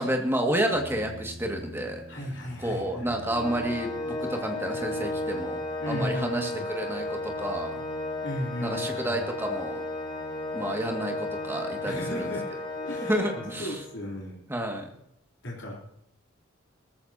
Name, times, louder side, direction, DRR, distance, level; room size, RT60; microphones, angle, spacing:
voice 1, 0.0-2.0 2.6-5.6 5.9-7.8 8.6-9.8 10.5-12.3 13.1-13.8 14.5-14.9, right 1 dB, 10° right, 2 dB, 2.1 m, -30 dB
sound 1, 0.7-13.8, equal, 55° right, 3.8 m, -50 dB
voice 2, 2.1-3.2 5.8-6.7 8.2-9.2 11.8-14.4 15.4-15.8, left 1 dB, 60° left, -3 dB, 3.7 m, -35 dB
Organ, 3.2-14.0, left 2 dB, 25° left, 2.5 m, -34 dB
19.0 x 14.0 x 2.9 m, 0.79 s
head